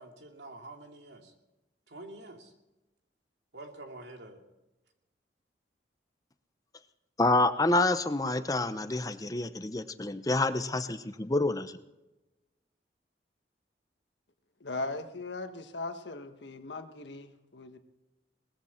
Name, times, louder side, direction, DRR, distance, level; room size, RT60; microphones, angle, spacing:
voice 1, 0.0-1.3 1.9-2.5 3.5-4.4, right 2 dB, 80° right, 3 dB, 2.6 m, -47 dB
voice 2, 7.2-11.8, left 2 dB, 20° left, 10 dB, 0.7 m, -28 dB
voice 3, 14.6-17.8, left 2 dB, 85° left, 8 dB, 1.4 m, -39 dB
20.0 x 14.5 x 4.4 m, 1.0 s
head